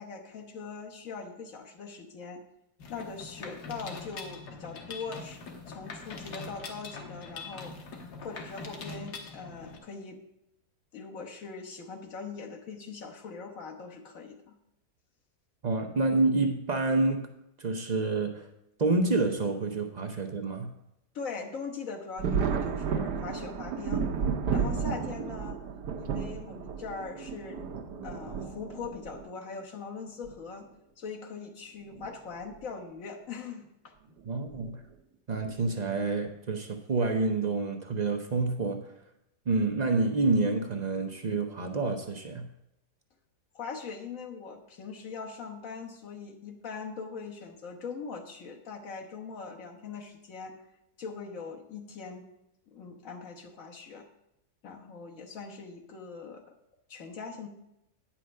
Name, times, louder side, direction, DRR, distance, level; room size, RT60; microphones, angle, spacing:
voice 1, 0.0-2.4 2.9-5.4 5.7-7.8 8.2-10.2 10.9-14.6 21.1-24.1 24.5-25.6 26.0-27.6 28.0-30.7 31.0-34.4 43.5-50.6 51.0-52.3 52.7-54.1 54.6-56.5 56.9-57.5, left 5 dB, 55° left, 2 dB, 1.5 m, -41 dB
Mechanisms, 2.8-9.8, left 3 dB, 75° left, 1.7 m, -43 dB
voice 2, 15.6-17.3 17.6-18.5 18.8-20.7 34.2-34.8 35.3-38.9 39.5-42.5, right 3 dB, 55° right, 5 dB, 0.4 m, -28 dB
Thunder, 22.2-29.2 30.3-30.4 31.8-32.1 32.4-32.5 34.5-34.7 35.4-35.8, right 6 dB, 75° right, 1.4 m, -32 dB
9.3 x 5.7 x 6.3 m, 0.84 s
omnidirectional pair, 1.8 m